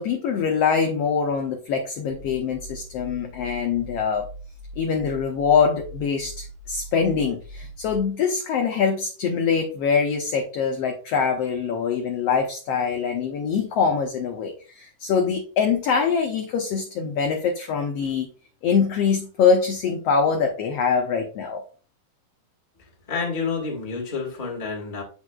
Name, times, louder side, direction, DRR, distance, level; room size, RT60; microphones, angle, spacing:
voice 1, 0.0-4.3 4.8-18.3 18.6-21.6, left 6 dB, 75° left, 1.4 m, -23 dB
sound 1, 2.1-8.0, right 1 dB, 70° right, 1.7 m, -41 dB
voice 2, 23.1-25.0, left 4 dB, 25° left, 1.1 m, -29 dB
8.1 x 6.2 x 2.3 m
omnidirectional pair, 3.7 m